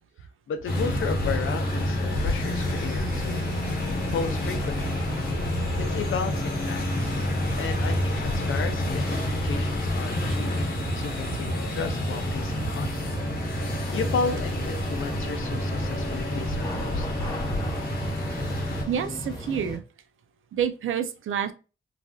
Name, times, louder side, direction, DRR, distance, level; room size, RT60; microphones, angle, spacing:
voice 1, 0.5-5.0 5.8-6.8 7.6-12.9 13.9-17.1, left 5 dB, 85° left, 6 dB, 0.5 m, -34 dB
sound 1, 0.7-18.8, left 1 dB, 45° left, 0.9 m, -28 dB
sound 2, 0.7-19.8, left 1 dB, 20° left, 0.8 m, -36 dB
sound 3, 2.4-9.5, right 1 dB, 45° right, 1.2 m, -46 dB
voice 2, 18.9-19.8 20.5-21.5, right 8 dB, 80° right, 10 dB, 0.4 m, -28 dB
3.2 x 2.5 x 2.2 m, 0.32 s
wide cardioid pair, 145°, 20 cm